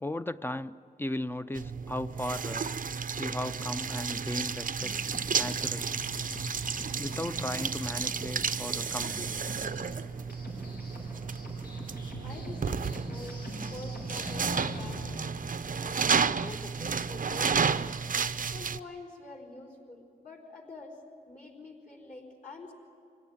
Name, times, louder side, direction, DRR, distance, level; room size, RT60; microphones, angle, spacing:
voice 1, 0.0-2.7 3.2-4.9 5.4-6.0 7.0-9.3, left 1 dB, 15° left, 12 dB, 0.6 m, -36 dB
sound 1, 1.5-18.8, right 6 dB, 60° right, 0.6 m, -32 dB
sound 2, 4.8-15.2, left 1 dB, 85° left, 7.4 m, -44 dB
voice 2, 12.2-15.4 15.7-17.9 18.5-21.0 21.3-22.7, left 2 dB, 50° left, -1 dB, 4.2 m, -46 dB
25.0 x 17.5 x 10.0 m, 2.3 s
wide cardioid pair, 110°, 16 cm